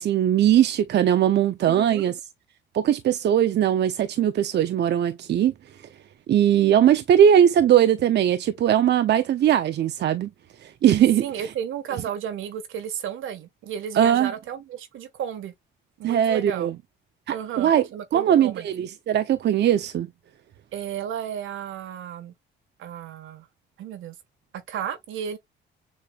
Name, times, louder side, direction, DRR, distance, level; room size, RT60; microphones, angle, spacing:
voice 1, 0.0-2.1 2.7-5.5 6.3-10.3 10.6-11.2 13.9-14.3 16.0-16.7 17.3-17.8 18.1-20.1, right 10 dB, 60° right, 0.6 m, -20 dB
voice 2, 1.7-2.1 11.2-15.5 16.0-16.7 17.3-18.7 20.7-22.3 22.8-23.5 23.8-24.1 24.5-25.4, right 9 dB, 85° right, 1.5 m, -33 dB
7.0 x 3.2 x 2.3 m
cardioid pair, 90°, 20 cm